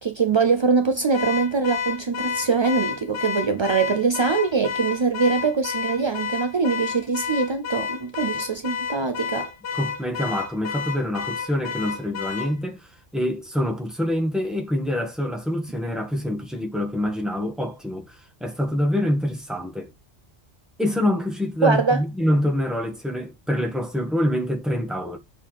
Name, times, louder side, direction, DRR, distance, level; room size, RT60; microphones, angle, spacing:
voice 1, 0.0-9.5 21.6-22.0, right 4 dB, 45° right, 0.4 m, -23 dB
Car / Alarm, 1.1-12.6, left 6 dB, 60° left, 1.0 m, -30 dB
voice 2, 9.7-19.9 20.8-25.2, left 1 dB, ahead, 1.6 m, -26 dB
7.1 x 4.3 x 3.4 m
omnidirectional pair, 1.2 m